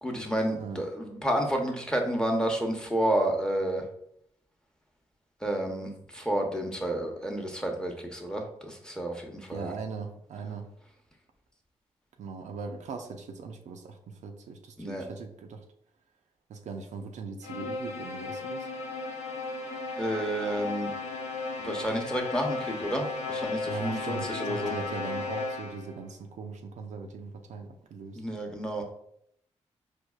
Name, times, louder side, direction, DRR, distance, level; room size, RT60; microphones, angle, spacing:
voice 1, 0.0-3.9 5.4-9.7 14.8-15.0 20.0-20.9 21.6-24.7 28.1-28.8, right 1 dB, 5° left, 2 dB, 0.8 m, -30 dB
voice 2, 0.6-0.9 9.5-10.7 12.2-15.6 16.5-18.7 23.7-28.4, right 5 dB, 70° right, 4 dB, 0.4 m, -40 dB
sound 1, 17.4-26.0, left 3 dB, 65° left, 0.8 m, -35 dB
4.5 x 2.3 x 2.3 m, 0.73 s
supercardioid pair, 50°, 13 cm